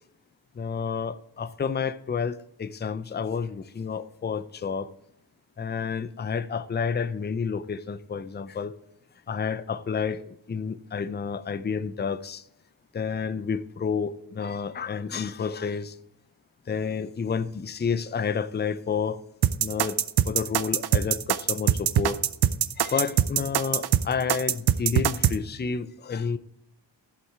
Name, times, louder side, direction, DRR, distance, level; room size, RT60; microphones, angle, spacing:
voice 1, 0.5-4.9 5.6-8.8 9.3-12.4 12.9-16.0 16.7-19.2 19.6-20.0 20.3-22.2 22.8-26.4, left 6 dB, 25° left, 0.4 m, -30 dB
sound 1, 19.4-25.4, right 10 dB, 55° right, 0.5 m, -22 dB
11.5 x 5.6 x 4.4 m
cardioid pair, 50°, 46 cm